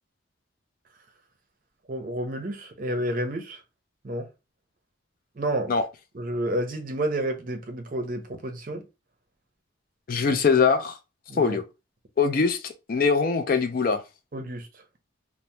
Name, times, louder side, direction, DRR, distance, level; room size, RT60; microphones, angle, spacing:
voice 1, 1.9-3.6 4.0-4.3 5.4-5.7 6.1-8.8 11.3-11.6 14.3-14.7, right 1 dB, 45° right, 0.6 m, -30 dB
voice 2, 10.1-11.0 11.4-11.6 12.2-14.0, left 5 dB, 45° left, 0.4 m, -22 dB
2.7 x 2.0 x 3.1 m
head